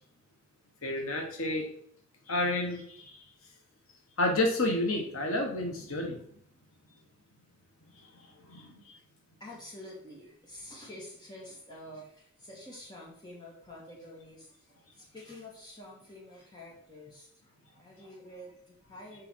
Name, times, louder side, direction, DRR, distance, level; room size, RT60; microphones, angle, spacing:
voice 1, 0.8-1.7 2.3-3.2 4.2-6.3 8.0-9.0, left 2 dB, 85° left, 3 dB, 1.3 m, -31 dB
voice 2, 9.4-19.3, left 1 dB, 20° left, -4 dB, 2.4 m, -48 dB
6.8 x 4.9 x 4.5 m, 0.66 s
head